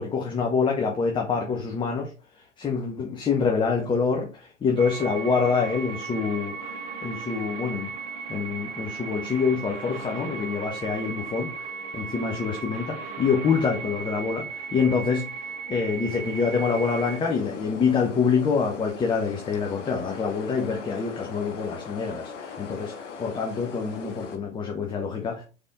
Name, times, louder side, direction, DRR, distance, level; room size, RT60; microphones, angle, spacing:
voice 1, 0.0-25.4, left 5 dB, 15° left, 0.6 m, -26 dB
sound 1, 4.8-17.2, right 5 dB, 40° right, 1.0 m, -36 dB
sound 2, 15.7-24.4, left 5 dB, 70° left, 1.0 m, -41 dB
4.0 x 3.4 x 3.6 m
figure-of-eight pair, 95°, 38 cm